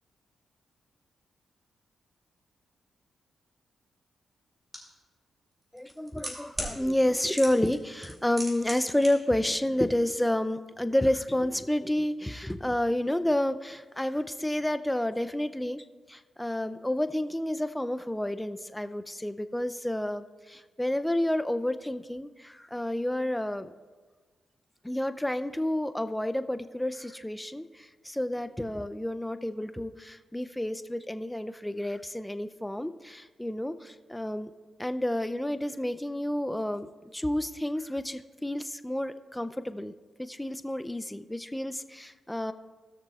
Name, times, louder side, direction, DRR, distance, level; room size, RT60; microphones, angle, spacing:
sound 1, 4.7-4.8 5.8-6.7 7.4-7.8 8.0-9.1 9.3-9.4, right 1 dB, 25° right, 2.8 m, -35 dB
voice 1, 5.7-23.7 24.8-34.5 34.8-39.9 40.2-42.5, left 1 dB, 10° left, 11 dB, 0.5 m, -30 dB
17.0 x 6.6 x 2.4 m, 1.4 s
supercardioid pair, 55°, 0 cm